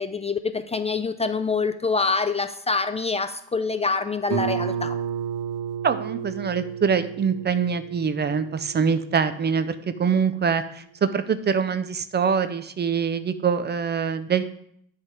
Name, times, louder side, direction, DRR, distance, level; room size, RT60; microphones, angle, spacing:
voice 1, 0.0-5.0, left 4 dB, 20° left, 10 dB, 0.4 m, -25 dB
Guitar, 4.3-9.7, right 8 dB, 85° right, 0.7 m, -32 dB
voice 2, 5.8-14.4, right 6 dB, 35° right, 12 dB, 0.6 m, -24 dB
8.0 x 3.5 x 5.8 m, 0.68 s
cardioid pair, 90°, 30 cm